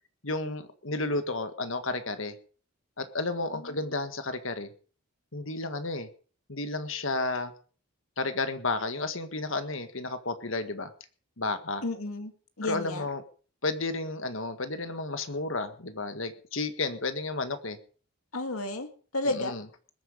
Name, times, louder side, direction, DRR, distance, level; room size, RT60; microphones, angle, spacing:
voice 1, 0.2-2.4 3.0-4.7 5.3-6.1 6.5-7.5 8.2-10.9 11.4-11.8 12.6-13.2 13.6-17.8 19.3-19.6, left 3 dB, 65° left, 9 dB, 1.7 m, -32 dB
voice 2, 11.8-12.3 12.6-13.1 18.3-18.9 19.1-19.5, left 2 dB, 80° left, 7 dB, 2.4 m, -32 dB
21.0 x 9.2 x 5.2 m, 0.40 s
head